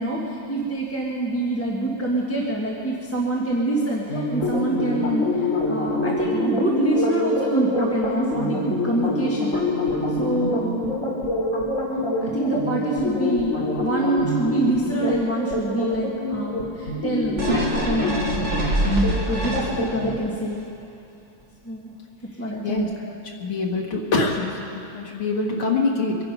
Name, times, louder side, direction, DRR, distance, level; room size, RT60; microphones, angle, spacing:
voice 1, 0.0-9.6 10.2-10.8 12.2-18.5 19.3-20.7 21.6-21.9 22.4-23.1, right 2 dB, 10° left, -4 dB, 1.3 m, -26 dB
sound 1, 4.1-20.2, left 2 dB, 40° left, 2.7 m, -26 dB
sound 2, 17.4-20.1 20.6-20.7, right 1 dB, 30° right, 2.9 m, -24 dB
voice 2, 23.4-26.2, left 3 dB, 90° left, -1 dB, 2.7 m, -24 dB
24.0 x 10.5 x 5.3 m, 2.6 s
omnidirectional pair, 2.3 m